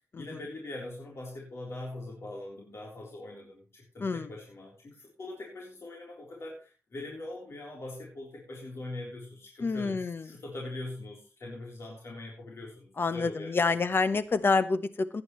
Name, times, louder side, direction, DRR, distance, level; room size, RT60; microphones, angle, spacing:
voice 1, 0.2-13.7, left 2 dB, 70° left, -2 dB, 3.8 m, -42 dB
voice 2, 4.0-4.3 9.6-10.3 13.0-15.2, left 4 dB, 50° left, 12 dB, 1.0 m, -28 dB
17.0 x 9.6 x 3.2 m, 0.32 s
wide cardioid pair, 130°, 5 cm